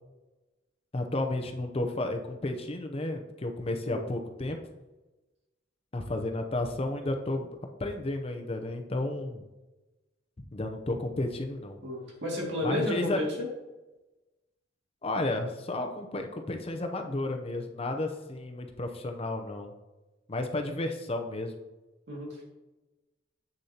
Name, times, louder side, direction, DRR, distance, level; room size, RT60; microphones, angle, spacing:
voice 1, 0.9-4.6 5.9-7.5 7.8-9.4 10.5-11.8 12.6-13.2 15.0-19.7 20.3-21.5, left 2 dB, 35° left, 5 dB, 0.7 m, -32 dB
voice 2, 3.9-4.2 11.8-13.5 22.1-22.4, left 1 dB, 75° right, -2 dB, 2.2 m, -32 dB
8.0 x 6.6 x 2.9 m, 1.1 s
head